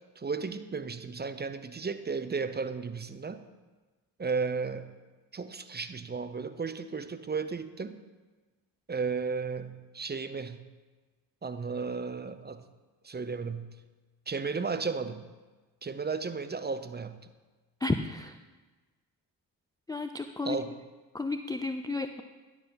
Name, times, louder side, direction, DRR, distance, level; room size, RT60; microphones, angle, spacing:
voice 1, 0.2-3.4 4.2-4.9 5.3-8.0 8.9-10.6 11.4-12.6 13.0-13.8 14.3-15.3 15.8-17.3 20.4-20.7, right 5 dB, 20° right, 11 dB, 0.6 m, -34 dB
voice 2, 17.8-18.4 19.9-20.6 21.1-22.2, left 3 dB, 10° left, 8 dB, 0.3 m, -32 dB
10.5 x 7.2 x 3.9 m, 1.3 s
hypercardioid pair, 50°, 50 cm